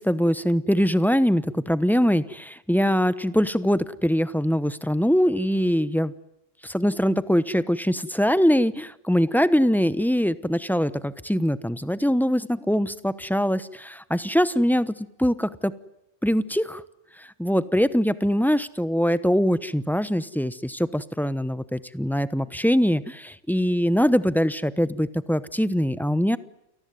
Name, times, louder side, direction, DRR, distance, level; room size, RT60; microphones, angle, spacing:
voice 1, 0.0-6.1 6.6-14.9 15.2-15.7 16.2-16.8 17.2-26.4, equal, ahead, 15 dB, 0.8 m, -23 dB
29.5 x 19.0 x 9.5 m, 0.82 s
omnidirectional pair, 1.3 m